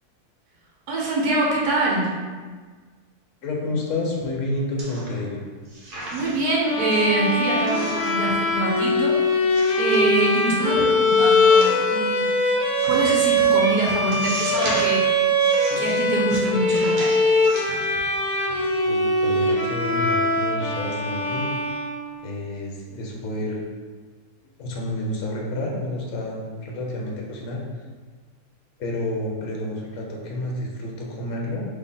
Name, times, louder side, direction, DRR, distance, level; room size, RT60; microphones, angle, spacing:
voice 1, 0.9-2.2 6.1-9.2 9.8-12.3 12.9-15.0 15.8-17.2, right 2 dB, 75° right, -3 dB, 1.4 m, -24 dB
voice 2, 3.4-5.4 18.8-21.5 22.2-23.6 24.6-27.6 28.8-31.6, left 1 dB, 60° left, -2 dB, 1.2 m, -29 dB
sound 1, 4.8-5.3 5.7-6.5 6.9-7.0 7.7-8.3 8.6-9.1 9.5-10.6 11.4-12.1 12.8-13.0 13.4-13.5 14.1-15.0 15.4-16.0 16.6-18.1 18.5-18.7, right 1 dB, 40° right, 0.9 m, -36 dB
sound 2, 6.7-22.3, left 1 dB, 80° left, 1.2 m, -21 dB
3.6 x 3.2 x 4.0 m, 1.5 s
omnidirectional pair, 1.6 m